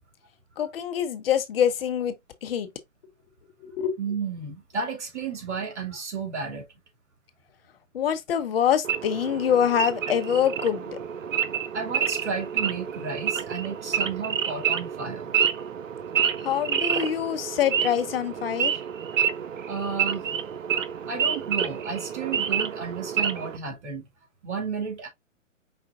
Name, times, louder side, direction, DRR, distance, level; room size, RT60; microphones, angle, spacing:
voice 1, 0.6-2.1 2.4-2.7 3.6-4.0 7.9-11.0 16.4-18.7, left 9 dB, 45° left, 0.8 m, -25 dB
voice 2, 4.0-6.7 11.7-15.3 19.6-20.2 21.1-24.0 24.4-25.1, right 5 dB, 60° right, 2.5 m, -32 dB
Wild animals / Idling, 8.8-23.6, right 8 dB, 75° right, 0.8 m, -28 dB
5.1 x 3.9 x 2.5 m
hypercardioid pair, 130°, 39 cm